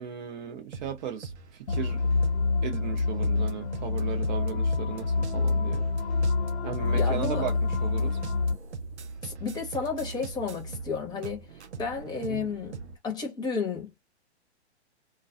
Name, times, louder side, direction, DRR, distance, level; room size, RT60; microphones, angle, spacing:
voice 1, 0.0-2.1 2.6-5.9 6.6-8.2 12.3-12.5, right 8 dB, 40° right, 0.7 m, -36 dB
sound 1, 0.7-13.0, right 5 dB, 75° right, 0.6 m, -42 dB
sound 2, 1.7-8.5, left 3 dB, 75° left, 1.0 m, -27 dB
voice 2, 6.9-7.4 9.2-11.5 11.8-12.8 13.0-14.0, left 5 dB, 10° left, 0.9 m, -32 dB
2.3 x 2.2 x 2.5 m
figure-of-eight pair, 115°, 34 cm